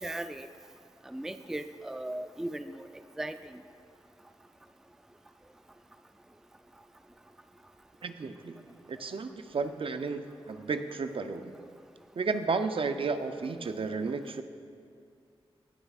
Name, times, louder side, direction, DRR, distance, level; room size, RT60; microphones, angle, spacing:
voice 1, 0.0-0.5 1.1-2.9 3.2-3.4, right 1 dB, 5° right, 10 dB, 0.3 m, -37 dB
voice 2, 8.0-8.6 8.9-11.6 12.2-14.4, right 4 dB, 60° right, 9 dB, 0.5 m, -33 dB
18.0 x 6.8 x 2.4 m, 2.3 s
cardioid pair, 40°, 11 cm